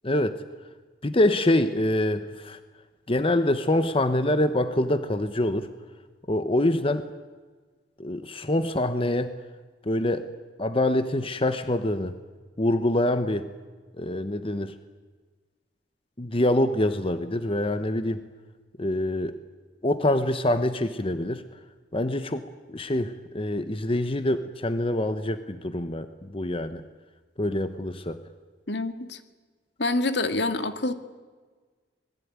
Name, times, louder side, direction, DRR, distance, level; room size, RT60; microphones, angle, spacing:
voice 1, 0.0-0.4 1.0-2.6 3.1-5.7 6.3-7.1 8.0-9.3 9.8-10.3 10.6-12.1 12.6-13.5 14.0-14.7 16.2-18.2 18.8-19.3 19.8-21.4 21.9-26.8 27.4-28.2, left 1 dB, 30° left, 10 dB, 1.1 m, -25 dB
voice 2, 28.7-29.2 29.8-30.9, left 2 dB, 65° left, 10 dB, 2.0 m, -26 dB
27.0 x 21.0 x 9.7 m, 1.4 s
head